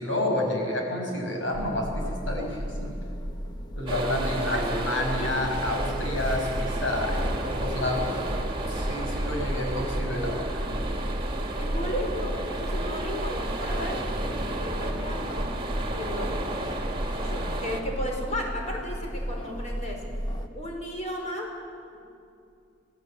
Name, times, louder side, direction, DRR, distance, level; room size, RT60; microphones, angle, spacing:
voice 1, 0.0-2.9 3.8-8.2 8.7-10.6, left 1 dB, 85° left, 1 dB, 5.7 m, -29 dB
sound 1, 1.5-20.5, equal, 25° left, 1.4 m, -35 dB
sound 2, 3.9-17.8, right 1 dB, 25° right, 2.3 m, -32 dB
voice 2, 4.4-5.6 11.6-15.4 15.9-16.4 17.1-20.0 20.5-21.5, equal, 40° left, 0 dB, 4.8 m, -34 dB
27.0 x 16.0 x 8.0 m, 2.6 s
head